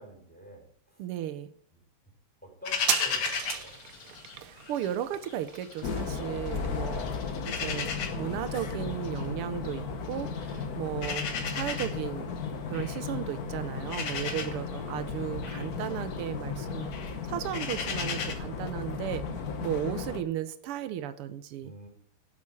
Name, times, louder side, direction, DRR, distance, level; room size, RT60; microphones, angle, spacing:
voice 1, 0.0-1.0 1.7-1.8 2.4-3.8 7.1-7.6 14.4-14.9 21.6-21.9, right 1 dB, 5° left, -1 dB, 4.7 m, -48 dB
voice 2, 1.0-1.5 4.4-7.1 7.4-12.4 12.7-16.9 17.3-19.2 19.6-21.7, right 11 dB, 85° right, 12 dB, 1.7 m, -35 dB
sound 1, 2.7-4.9 5.2-6.5 6.9-18.3, left 6 dB, 85° left, 2.5 m, -36 dB
sound 2, 2.7-9.8 10.1-10.2, right 9 dB, 60° right, 0.9 m, -38 dB
sound 3, 5.8-20.2, left 5 dB, 50° left, 1.3 m, -35 dB
9.5 x 7.6 x 8.8 m, 0.62 s
omnidirectional pair, 2.4 m